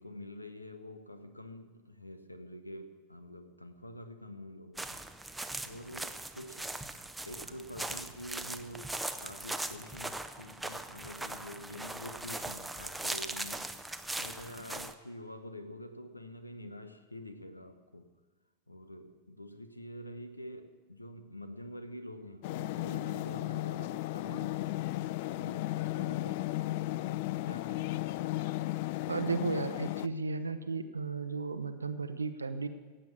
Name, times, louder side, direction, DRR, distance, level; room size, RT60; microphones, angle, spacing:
voice 1, 0.0-5.0 5.6-6.7 7.3-18.1 18.7-24.8 25.3-28.3, left 1 dB, 85° left, 1.1 m, -47 dB
sound 1, 4.8-14.9, right 2 dB, 5° right, 0.8 m, -40 dB
sound 2, 22.4-30.1, left 17 dB, 50° left, 0.4 m, -35 dB
voice 2, 29.1-32.7, right 4 dB, 80° right, 0.8 m, -34 dB
15.5 x 8.4 x 8.5 m
figure-of-eight pair, 90°, 0 cm